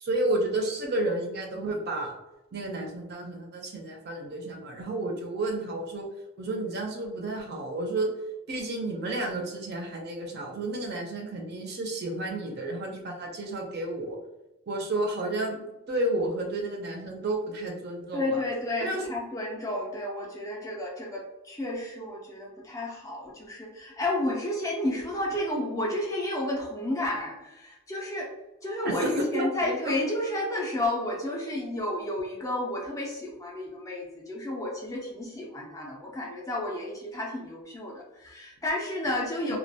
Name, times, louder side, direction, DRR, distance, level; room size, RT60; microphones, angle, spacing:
voice 1, 0.0-2.2 2.5-6.1 6.4-8.1 8.5-14.2 14.7-18.4 18.8-19.0 28.8-29.9 39.5-39.6, right 1 dB, 45° right, 2 dB, 0.4 m, -31 dB
voice 2, 18.1-28.3 28.6-39.6, left 1 dB, 15° left, -2 dB, 0.3 m, -31 dB
2.3 x 2.1 x 2.6 m, 0.97 s
head